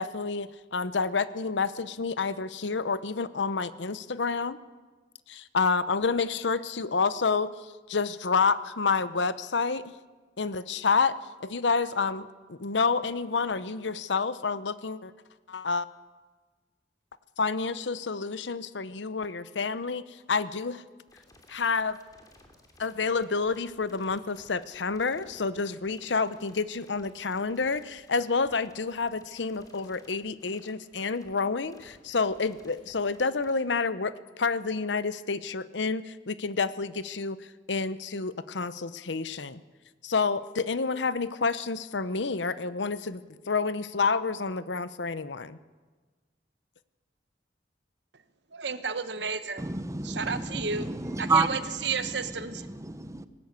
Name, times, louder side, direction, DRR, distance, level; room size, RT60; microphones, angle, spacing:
voice 1, 0.0-4.6 5.3-9.8 10.4-11.2 11.4-15.1 15.5-15.8 17.4-20.8 21.5-22.0 22.8-37.4 37.7-39.6 40.0-45.6, left 4 dB, 85° left, 15 dB, 0.8 m, -29 dB
sound 1, 21.1-33.5, left 2 dB, 20° left, 3.0 m, -58 dB
voice 2, 48.5-49.7 50.0-50.9 51.2-52.7, right 5 dB, 70° right, 11 dB, 1.2 m, -32 dB
voice 3, 49.6-53.3, right 3 dB, 15° right, 12 dB, 0.9 m, -30 dB
19.0 x 18.5 x 8.2 m, 1.3 s
head